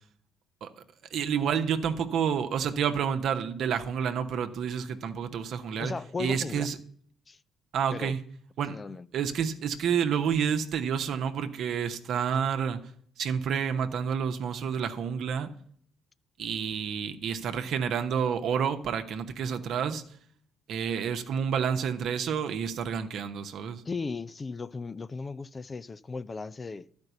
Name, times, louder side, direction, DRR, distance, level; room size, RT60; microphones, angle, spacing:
voice 1, 1.1-5.9 6.2-6.8 7.7-8.2 8.6-8.8 9.1-12.8 13.2-15.5 16.4-20.0 20.7-23.8, right 7 dB, 65° right, 0.9 m, -29 dB
voice 2, 5.8-6.7 7.3-7.4 7.9-8.1 8.7-9.1 23.9-27.0, left 4 dB, 35° left, 0.4 m, -36 dB
12.0 x 5.3 x 8.1 m
hypercardioid pair, 55°, 0 cm